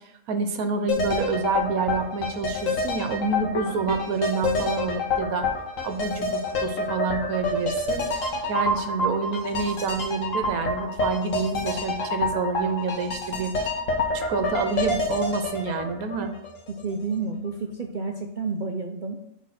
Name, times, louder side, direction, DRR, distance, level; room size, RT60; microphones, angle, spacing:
voice 1, 0.3-5.5 5.8-13.5 14.1-16.3, right 4 dB, 80° right, 7 dB, 1.3 m, -28 dB
sound 1, 0.9-16.8 17.1-17.2, left 3 dB, 60° left, 1.5 m, -27 dB
voice 2, 16.7-19.2, right 4 dB, 55° right, 3 dB, 0.5 m, -30 dB
6.4 x 4.0 x 5.7 m, 0.77 s
omnidirectional pair, 1.5 m